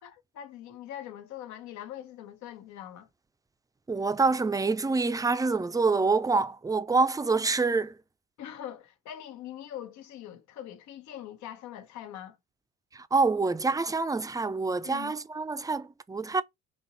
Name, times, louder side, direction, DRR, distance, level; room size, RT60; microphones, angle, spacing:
voice 1, 0.0-3.1 8.4-12.4 14.8-15.1, left 11 dB, 70° left, 1.1 m, -42 dB
voice 2, 3.9-7.9 12.9-16.4, right 4 dB, 10° right, 0.6 m, -26 dB
4.4 x 2.9 x 4.0 m
supercardioid pair, 75°, 30 cm